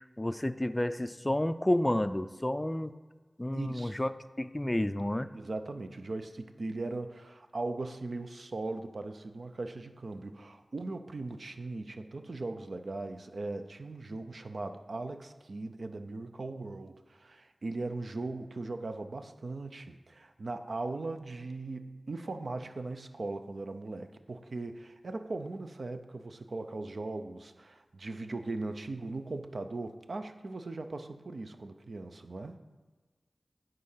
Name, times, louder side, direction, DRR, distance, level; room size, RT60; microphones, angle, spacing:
voice 1, 0.0-2.9 3.4-4.1 4.4-5.3, left 1 dB, 20° left, 12 dB, 0.3 m, -30 dB
voice 2, 3.5-3.9 5.3-32.6, right 2 dB, 65° right, 8 dB, 0.5 m, -39 dB
9.7 x 3.8 x 5.6 m, 1.3 s
wide cardioid pair, 75°, 0 cm